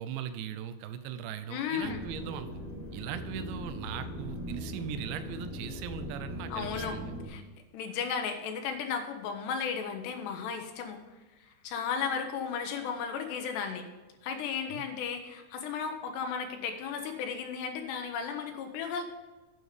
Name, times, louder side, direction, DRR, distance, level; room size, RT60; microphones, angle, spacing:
voice 1, 0.0-2.5 2.9-7.1 14.7-14.9, right 9 dB, 85° right, 10 dB, 3.0 m, -39 dB
voice 2, 1.5-2.0 6.5-6.9 7.3-7.4 7.7-11.0 11.6-13.9 14.2-19.0, left 6 dB, 80° left, 5 dB, 3.0 m, -34 dB
sound 1, 1.8-7.3, equal, 35° left, 2.6 m, -40 dB
9.4 x 8.1 x 5.0 m, 1.2 s
omnidirectional pair, 5.0 m